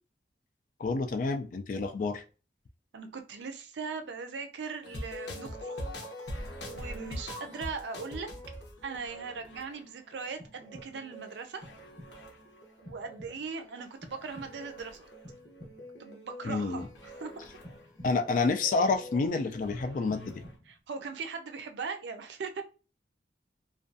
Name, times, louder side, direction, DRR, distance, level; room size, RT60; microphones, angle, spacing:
voice 1, 0.8-2.2 16.4-16.9 18.0-20.3, left 3 dB, 50° left, 0.3 m, -29 dB
voice 2, 2.9-5.7 6.7-8.3 8.8-11.6 12.8-15.1 16.0-16.9 17.2-17.5 20.7-22.6, right 5 dB, 80° right, 0.4 m, -39 dB
sound 1, 4.8-20.6, equal, 70° left, 0.7 m, -45 dB
sound 2, 10.4-11.2 11.6-12.3 12.9-13.6 14.0-14.8 15.2-16.1 16.5-17.3 17.6-18.4 18.9-19.7 20.1-20.9, equal, 10° left, 0.7 m, -51 dB
2.4 x 2.2 x 2.5 m
head